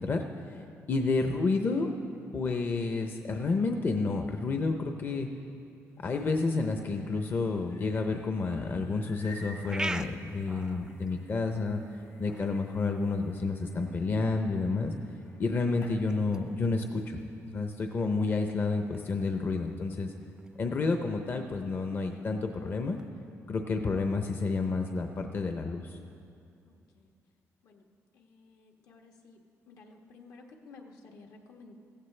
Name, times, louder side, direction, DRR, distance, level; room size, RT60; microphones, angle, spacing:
voice 1, 0.0-1.9 2.3-5.3 6.0-11.8 12.2-14.9 15.4-17.2 17.5-20.1 20.6-23.0 23.5-26.0, left 3 dB, 40° left, 5 dB, 0.6 m, -30 dB
sound 1, 5.9-16.0, left 1 dB, 55° left, 1.4 m, -55 dB
cat-waking-ritual, 9.0-23.1, right 2 dB, 10° right, 0.4 m, -46 dB
voice 2, 18.2-19.4 26.7-27.1 27.6-27.9 28.1-29.4 29.7-31.8, left 3 dB, 75° left, 2 dB, 1.3 m, -55 dB
15.5 x 15.0 x 3.3 m, 2.5 s
cardioid pair, 135°, 6 cm